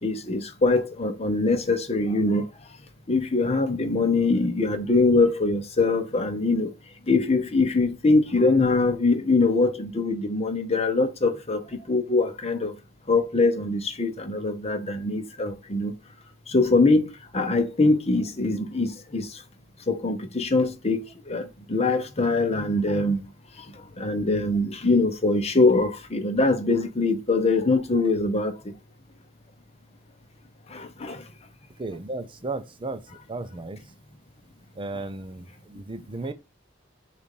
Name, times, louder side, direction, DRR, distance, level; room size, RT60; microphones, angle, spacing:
voice 1, 0.0-2.5 3.1-6.7 7.1-12.7 13.1-15.9 16.5-17.1 17.3-19.3 19.9-23.2 24.0-28.5 30.7-31.2, left 3 dB, 35° left, 0.8 m, -23 dB
voice 2, 31.8-33.0 33.3-33.8 34.8-36.3, right 2 dB, 25° right, 0.5 m, -34 dB
6.9 x 2.5 x 5.4 m
head